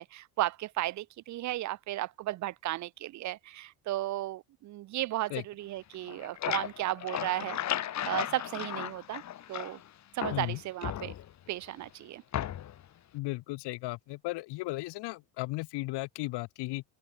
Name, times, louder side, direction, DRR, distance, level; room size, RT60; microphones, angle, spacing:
voice 1, 0.0-7.6 8.1-9.2 9.5-9.8 10.1-11.1 11.5-12.2, right 15 dB, 45° right, 0.5 m, -34 dB
sound 1, 5.9-9.9 10.2-11.5 12.3-12.9, left 11 dB, 40° left, 1.6 m, -35 dB
voice 2, 13.1-16.8, left 21 dB, 70° left, 1.3 m, -35 dB
open air
cardioid pair, 140°, 43 cm